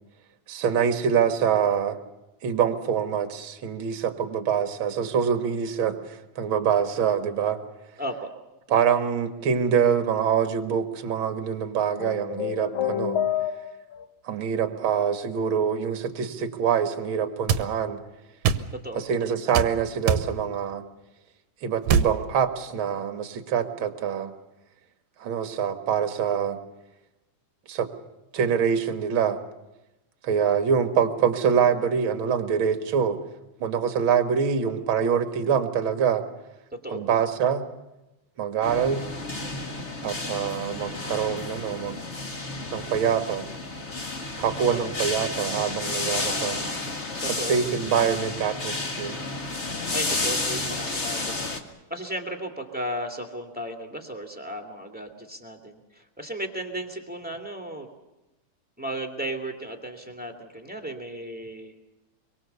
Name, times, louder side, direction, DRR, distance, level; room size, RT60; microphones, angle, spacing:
voice 1, 0.5-2.0 2.4-6.0 6.4-7.6 8.7-13.2 14.2-18.0 18.9-20.8 21.6-24.3 25.2-26.6 27.7-27.9 28.3-29.4 30.2-33.2 33.6-36.2 36.9-37.6 38.4-39.0 40.0-42.0 42.7-43.4 44.4-46.6 47.5-49.2, right 7 dB, 50° right, 7 dB, 1.9 m, -25 dB
voice 2, 8.0-8.3 18.8-19.2 36.8-37.0 44.7-44.8 47.2-47.5 49.9-51.5 51.9-57.9 58.8-61.7, right 1 dB, 5° right, 2 dB, 2.0 m, -35 dB
sound 1, 12.0-14.1, left 9 dB, 85° left, 1.1 m, -28 dB
sound 2, 17.5-17.7 18.4-18.7 19.5-19.7 20.1-20.3 21.9-22.1, right 7 dB, 90° right, 2.6 m, -21 dB
sound 3, 38.6-51.6, left 2 dB, 30° left, 1.3 m, -31 dB
25.0 x 23.5 x 6.9 m, 1.0 s
omnidirectional pair, 3.6 m